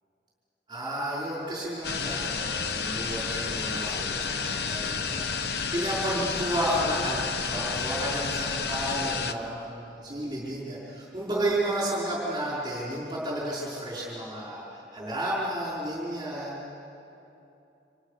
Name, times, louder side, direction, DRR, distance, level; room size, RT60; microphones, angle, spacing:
voice 1, 0.7-16.7, right 1 dB, 25° right, -6 dB, 4.9 m, -32 dB
sound 1, 1.8-9.3, left 5 dB, 60° left, 1.0 m, -31 dB
28.5 x 26.5 x 6.6 m, 2.9 s
head